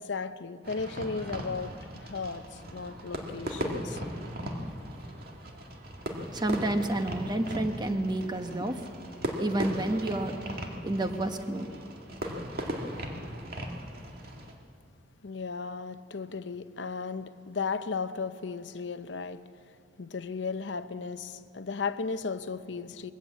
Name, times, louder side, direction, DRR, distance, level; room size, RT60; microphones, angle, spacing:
voice 1, 0.0-4.0 15.2-19.4 20.0-23.1, left 4 dB, 80° left, 0.7 m, -35 dB
Fireworks, 0.6-14.5, equal, 55° right, 2.1 m, -38 dB
voice 2, 6.3-8.8 9.4-10.6 10.8-11.7, right 1 dB, 25° right, 1.1 m, -30 dB
21.5 x 15.0 x 8.4 m
head